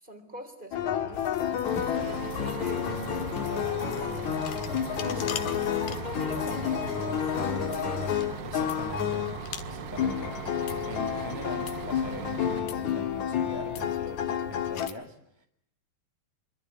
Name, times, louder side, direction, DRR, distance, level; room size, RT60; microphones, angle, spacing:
voice 1, 0.0-1.3 1.8-4.4 4.9-5.2 5.9-7.6, right 1 dB, 15° right, 8 dB, 3.8 m, -43 dB
sound 1, 0.7-14.9, left 9 dB, 60° left, 2.9 m, -30 dB
sound 2, 1.1-14.9, left 8 dB, 80° left, 3.3 m, -44 dB
Bus, 1.7-12.6, right 9 dB, 85° right, 3.0 m, -40 dB
voice 2, 5.0-5.4 8.4-9.3 9.6-15.5, left 1 dB, 15° left, 3 dB, 0.8 m, -42 dB
25.5 x 25.5 x 8.4 m, 0.72 s
omnidirectional pair, 3.9 m